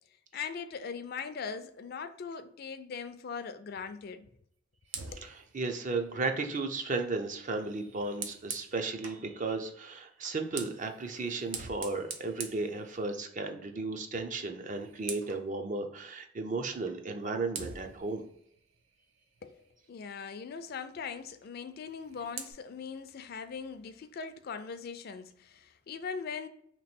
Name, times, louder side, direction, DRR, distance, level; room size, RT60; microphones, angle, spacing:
voice 1, 0.3-4.3 5.1-5.3 19.4-19.6 19.9-26.5, left 5 dB, 55° left, 0.4 m, -40 dB
Fire, 4.8-9.3 10.2-13.5 13.8-14.1 14.4-15.5 16.9-17.0 17.5-19.9 21.7-22.5, right 6 dB, 90° right, 0.6 m, -45 dB
voice 2, 5.2-18.2, right 3 dB, 40° right, 0.5 m, -34 dB
3.0 x 3.0 x 4.2 m
head